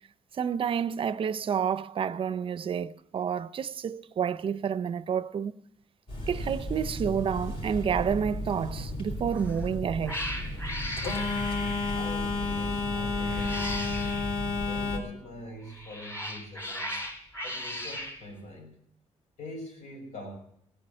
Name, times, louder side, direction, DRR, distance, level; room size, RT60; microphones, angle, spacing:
voice 1, 0.4-5.5 6.3-10.2, right 7 dB, 45° right, 0.5 m, -29 dB
Telephone, 6.1-15.0, left 3 dB, 50° left, 4.1 m, -32 dB
Cat, 9.3-9.6 10.0-12.1 13.2-14.3 15.6-18.2, equal, 20° left, 3.3 m, -37 dB
voice 2, 11.9-14.2 14.6-17.0 17.4-18.7 19.4-20.3, left 1 dB, 80° left, 6.3 m, -44 dB
17.5 x 9.8 x 6.5 m
cardioid pair, 130°, 12 cm